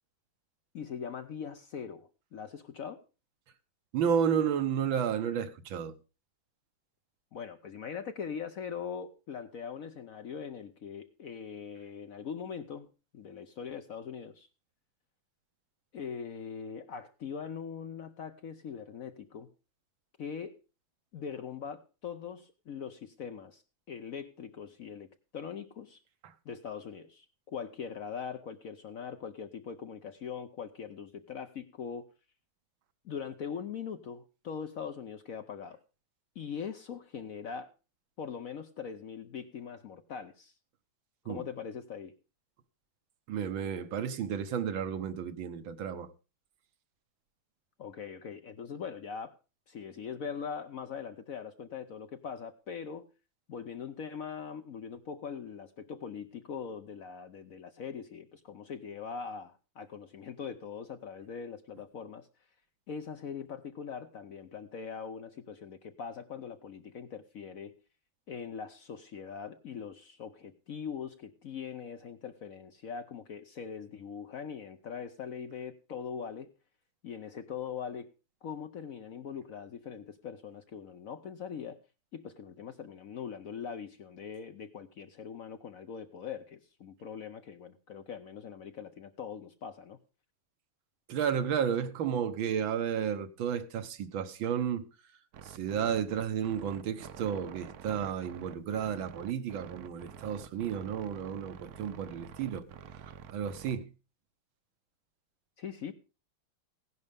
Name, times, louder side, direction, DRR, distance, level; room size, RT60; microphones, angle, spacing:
voice 1, 0.7-3.0 7.3-14.5 15.9-19.5 20.2-20.6 21.1-23.6 23.9-25.1 25.3-26.0 26.4-32.1 33.0-35.8 36.4-37.7 38.2-40.5 41.2-42.2 47.8-49.4 49.7-53.1 53.5-62.3 62.9-67.7 68.3-76.5 77.0-78.1 78.4-81.8 82.1-90.0 105.6-105.9, left 7 dB, 60° left, 0.9 m, -41 dB
voice 2, 3.9-6.0 26.2-26.3 41.3-41.4 43.3-46.1 91.1-94.9 95.5-102.7 103.3-103.9, right 8 dB, 80° right, 1.8 m, -32 dB
sound 1, 95.3-103.8, right 8 dB, 60° right, 1.1 m, -48 dB
16.0 x 11.0 x 3.5 m
omnidirectional pair, 2.1 m